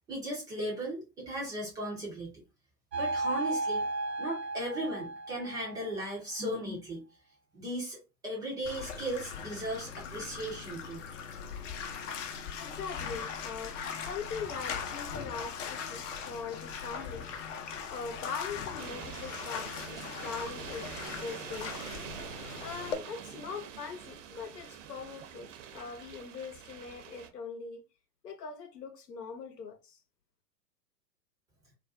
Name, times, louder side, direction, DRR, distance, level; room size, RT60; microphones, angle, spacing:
voice 1, 0.1-2.4 2.9-3.8 4.2-7.1 7.5-11.0, right 1 dB, 10° right, 0.4 m, -36 dB
sound 1, 2.9-6.1, right 2 dB, 90° right, 0.9 m, -34 dB
Bathtub (filling or washing), 8.6-23.0, left 6 dB, 50° left, 0.6 m, -40 dB
voice 2, 12.6-17.3 17.9-21.9 22.6-27.8 28.2-30.0, left 5 dB, 80° left, 0.8 m, -41 dB
sound 2, 18.8-27.3, right 9 dB, 50° right, 0.6 m, -45 dB
2.4 x 2.2 x 2.4 m
figure-of-eight pair, 100°, 48 cm